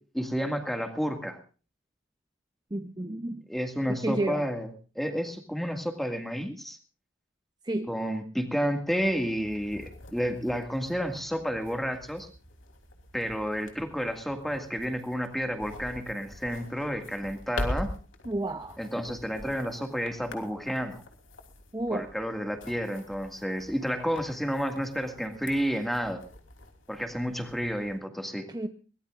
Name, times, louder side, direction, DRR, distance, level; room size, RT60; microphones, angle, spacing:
voice 1, 0.1-1.4 3.5-4.7 5.0-6.8 7.9-12.3 13.1-17.9 18.8-21.0 21.9-26.2 26.9-28.5, equal, ahead, 5 dB, 2.0 m, -31 dB
voice 2, 2.7-3.4 3.9-4.4 7.6-7.9 18.2-18.8 21.7-22.1 28.5-28.7, right 1 dB, 20° right, 6 dB, 0.8 m, -31 dB
sound 1, 8.9-28.0, left 1 dB, 85° left, 3.2 m, -44 dB
23.0 x 19.0 x 2.5 m, 0.38 s
head